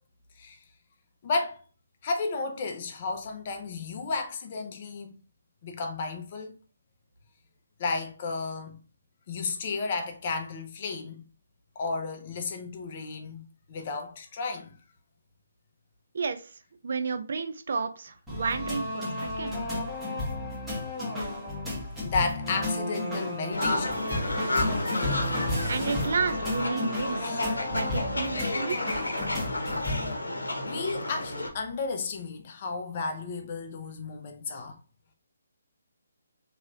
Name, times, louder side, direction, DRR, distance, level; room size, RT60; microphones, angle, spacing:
voice 1, 1.2-1.6 2.0-5.2 5.6-6.6 7.8-8.8 9.3-11.2 11.8-14.8 19.4-19.6 22.0-24.0 27.2-27.4 30.6-34.8, left 4 dB, 40° left, 0.7 m, -33 dB
voice 2, 16.8-19.6 25.7-27.2 27.7-28.8, right 5 dB, 60° right, 0.4 m, -31 dB
sound 1, 18.3-30.1, left 1 dB, 5° right, 1.1 m, -32 dB
sound 2, 23.5-31.5, left 1 dB, 90° left, 0.8 m, -31 dB
3.1 x 3.0 x 2.5 m
figure-of-eight pair, 150°, 0 cm